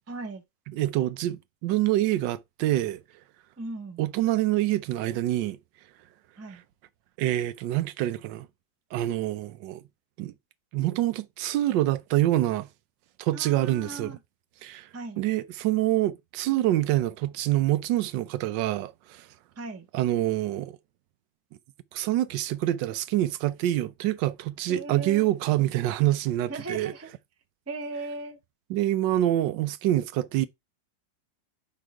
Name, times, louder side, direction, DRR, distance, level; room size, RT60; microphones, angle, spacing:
voice 1, 0.1-0.4 3.6-4.0 6.4-6.6 13.3-14.2 14.9-15.2 19.6-19.9 24.7-25.3 26.5-27.1 27.7-28.4, right 3 dB, 20° right, 0.3 m, -37 dB
voice 2, 0.7-3.0 4.0-5.6 6.5-6.6 7.2-8.5 8.9-9.8 10.2-10.3 10.7-12.7 13.2-14.2 14.6-14.9 15.2-19.3 19.9-20.8 21.9-26.9 28.7-30.5, right 14 dB, 85° right, 1.3 m, -26 dB
5.4 x 3.8 x 4.7 m
omnidirectional pair, 1.9 m